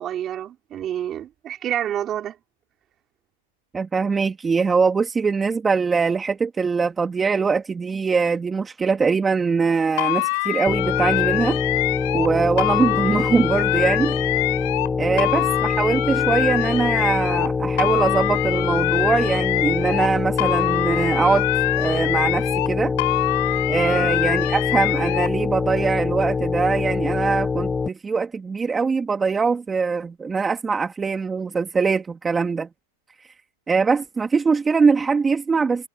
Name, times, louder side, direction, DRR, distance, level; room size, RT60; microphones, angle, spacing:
voice 1, 0.0-2.4 15.1-15.3 23.9-24.2, right 10 dB, 30° right, 3.7 m, -29 dB
voice 2, 3.7-11.6 12.1-14.2 15.0-21.5 21.8-22.9 23.7-32.7 33.7-35.9, right 5 dB, 15° right, 2.6 m, -22 dB
sound 1, 10.0-12.3 12.6-14.9 15.2-17.5 17.8-20.1 20.4-22.7 23.0-25.3, left 26 dB, 55° left, 5.6 m, -24 dB
sound 2, 10.7-27.9, left 4 dB, 15° left, 0.7 m, -25 dB
hypercardioid pair, 125°, 0 cm